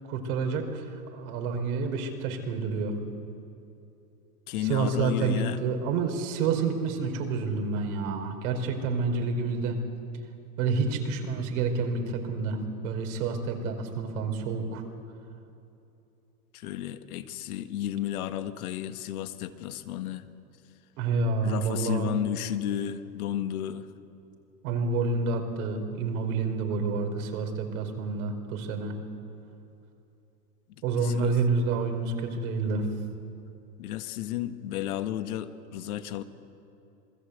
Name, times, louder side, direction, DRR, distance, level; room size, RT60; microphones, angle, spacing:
voice 1, 0.1-0.9 1.1-2.9 4.6-9.8 10.6-14.8 21.0-22.1 24.6-29.0 30.8-32.9, right 4 dB, 60° right, 4 dB, 4.7 m, -28 dB
voice 2, 4.5-5.6 16.5-20.3 21.4-23.9 30.7-31.3 33.8-36.2, left 11 dB, 65° left, 9 dB, 1.7 m, -33 dB
27.0 x 20.0 x 8.2 m, 2.8 s
hypercardioid pair, 105°, 48 cm